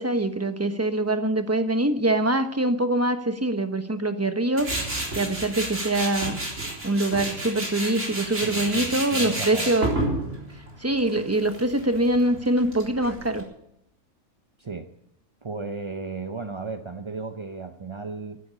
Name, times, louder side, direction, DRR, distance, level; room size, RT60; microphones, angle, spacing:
voice 1, 0.0-4.7 5.1-6.4 6.8-9.9 10.8-13.4, right 1 dB, 10° right, 8 dB, 1.0 m, -24 dB
Tools, 4.6-13.4, right 1 dB, 50° right, 4.2 m, -31 dB
voice 2, 8.4-9.8 14.6-14.9 15.4-18.4, right 4 dB, 30° right, 6 dB, 0.5 m, -35 dB
12.5 x 11.5 x 8.2 m, 0.80 s
omnidirectional pair, 1.6 m